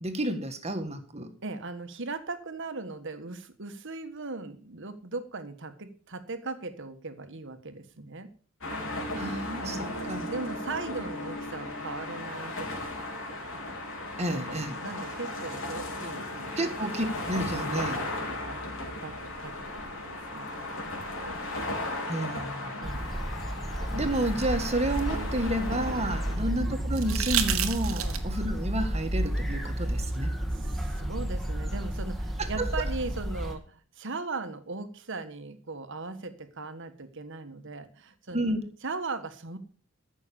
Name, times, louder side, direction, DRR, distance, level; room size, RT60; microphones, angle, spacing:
voice 1, 0.0-1.3 9.2-10.3 14.2-14.8 16.6-17.9 22.1-22.8 23.9-30.3 32.6-32.7 38.3-38.6, right 1 dB, 30° right, 7 dB, 1.7 m, -31 dB
voice 2, 1.4-8.3 9.6-9.9 10.3-13.0 14.5-16.7 17.5-18.6 18.8-20.5 22.8-23.1 26.3-26.6 28.0-28.2 30.5-38.5 38.8-39.6, right 3 dB, 65° right, 9 dB, 1.5 m, -39 dB
sound 1, 8.6-26.4, left 1 dB, 70° left, 4.2 m, -36 dB
sound 2, 22.8-33.5, equal, ahead, 2.0 m, -32 dB
sound 3, 23.8-26.0 26.9-28.5 30.1-30.2, right 10 dB, 80° right, 1.5 m, -33 dB
14.0 x 6.4 x 7.0 m, 0.43 s
head